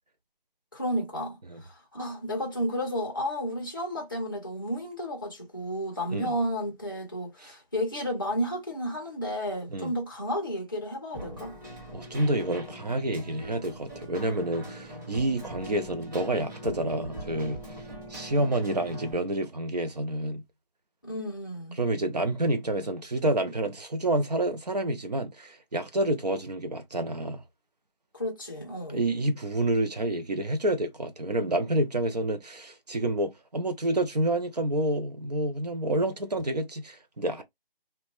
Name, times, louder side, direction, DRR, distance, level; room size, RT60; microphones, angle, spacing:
voice 1, 0.7-11.5 21.0-21.8 28.1-29.0, equal, 20° left, 0.6 m, -32 dB
Keyboard (musical), 11.1-19.1, equal, 20° right, 1.4 m, -42 dB
voice 2, 11.9-17.6 18.1-20.4 21.8-27.4 28.9-37.4, right 1 dB, 45° right, 0.5 m, -28 dB
2.7 x 2.1 x 2.9 m
figure-of-eight pair, 170°, 29 cm